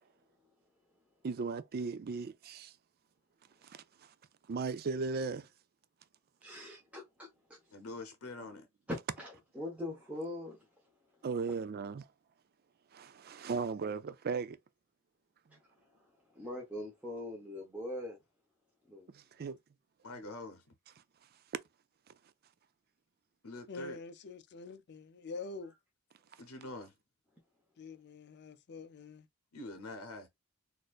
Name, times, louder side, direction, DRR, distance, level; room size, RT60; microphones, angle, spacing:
voice 1, 1.2-2.7 3.6-4.1 4.5-5.5 11.2-12.1 12.9-14.6 19.1-19.6 23.5-23.6, right 4 dB, 45° right, 0.4 m, -37 dB
voice 2, 6.4-7.6 9.2-10.6 15.5-15.6 16.3-18.2 18.9-19.1, left 1 dB, 5° right, 0.9 m, -42 dB
voice 3, 7.7-8.7 20.0-20.7 23.4-24.0 26.4-27.0 29.5-30.3, left 2 dB, 80° left, 0.8 m, -45 dB
voice 4, 23.7-25.7 27.8-29.3, left 3 dB, 50° left, 0.4 m, -46 dB
4.1 x 2.6 x 2.4 m
head